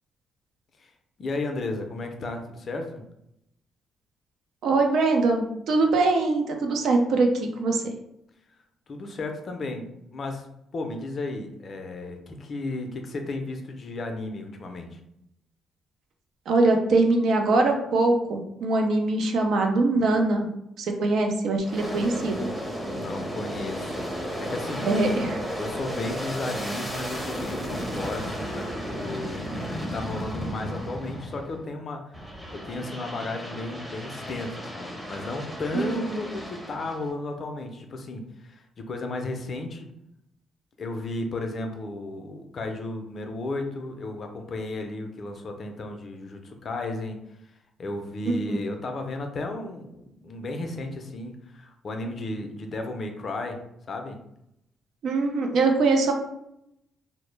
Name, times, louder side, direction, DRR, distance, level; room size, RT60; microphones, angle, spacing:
voice 1, 1.2-3.0 8.9-10.5 10.7-15.0 22.8-25.2 25.6-29.5 29.8-32.2 32.5-39.9 40.8-47.2 47.8-53.6 53.9-54.2, left 2 dB, 50° left, 4 dB, 0.4 m, -34 dB
voice 2, 4.6-7.8 16.5-20.5 20.8-22.5 24.8-25.4 35.7-36.2 48.5-48.6 55.0-56.1, right 3 dB, 70° right, 3 dB, 0.4 m, -22 dB
Aircraft, 21.6-31.7 32.1-37.1, equal, 5° right, 0.6 m, -34 dB
2.0 x 2.0 x 3.1 m, 0.79 s
cardioid pair, 90°, 0 cm